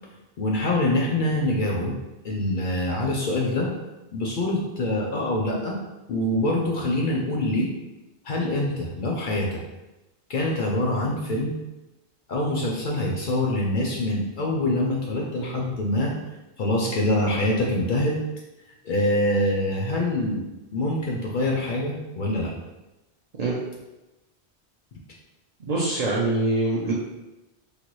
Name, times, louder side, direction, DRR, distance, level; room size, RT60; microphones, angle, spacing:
voice 1, 0.4-2.0 2.2-3.7 4.1-5.8 6.1-7.7 8.2-9.5 10.3-11.5 12.3-16.1 16.6-18.2 18.8-20.4 20.7-22.5, left 1 dB, 60° left, -2 dB, 0.6 m, -25 dB
voice 2, 25.7-26.9, right 2 dB, 55° right, -6 dB, 0.4 m, -24 dB
3.2 x 2.2 x 3.0 m, 1.0 s
omnidirectional pair, 1.1 m